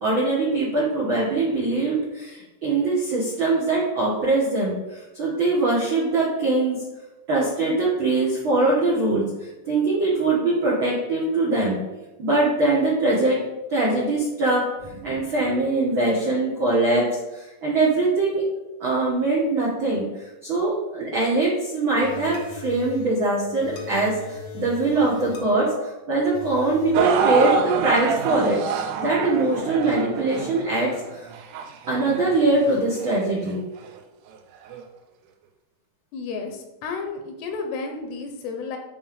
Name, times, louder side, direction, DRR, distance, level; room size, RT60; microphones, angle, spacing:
voice 1, 0.0-6.8 7.3-11.8 12.2-13.4 13.7-17.0 17.3-18.4 18.8-20.0 20.4-25.7 26.1-28.6 29.0-31.3 31.9-33.6, right 2 dB, 70° right, -5 dB, 1.1 m, -22 dB
sound 1, 21.9-30.6, left 4 dB, 65° left, 1.5 m, -39 dB
sound 2, 26.9-33.2 33.9-34.0 34.7-34.8, right 6 dB, 90° right, 2.8 m, -26 dB
voice 2, 36.1-38.8, left 4 dB, 80° left, 4 dB, 3.0 m, -32 dB
10.5 x 3.5 x 5.2 m, 1.0 s
omnidirectional pair, 4.7 m